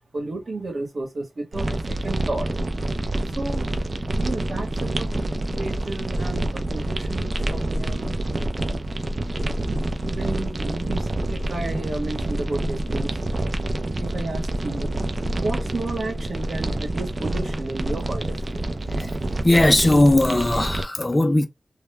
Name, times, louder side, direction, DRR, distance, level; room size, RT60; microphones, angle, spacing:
voice 1, 0.1-2.5 3.2-3.8 4.1-5.1 5.4-8.1 10.0-13.2 14.0-14.9 15.3-18.7, right 2 dB, 60° right, 1.0 m, -32 dB
sound 1, 1.5-20.8, right 1 dB, 45° right, 0.4 m, -27 dB
voice 2, 19.4-21.5, left 1 dB, 25° left, 0.4 m, -18 dB
2.2 x 2.0 x 3.2 m
wide cardioid pair, 90°, 0 cm